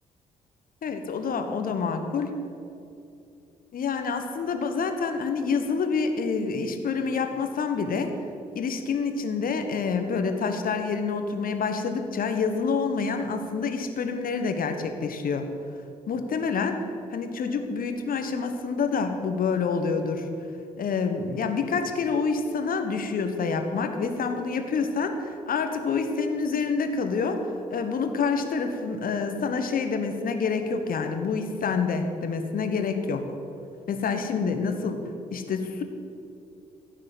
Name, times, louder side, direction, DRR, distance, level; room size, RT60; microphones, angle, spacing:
voice 1, 0.8-2.3 3.7-8.1 8.5-15.5 16.1-16.8 17.1-20.3 20.8-33.3 33.9-35.0 35.3-35.8, left 5 dB, 50° left, 7 dB, 1.4 m, -27 dB
15.0 x 6.6 x 9.5 m, 2.7 s
figure-of-eight pair, 40°, 19 cm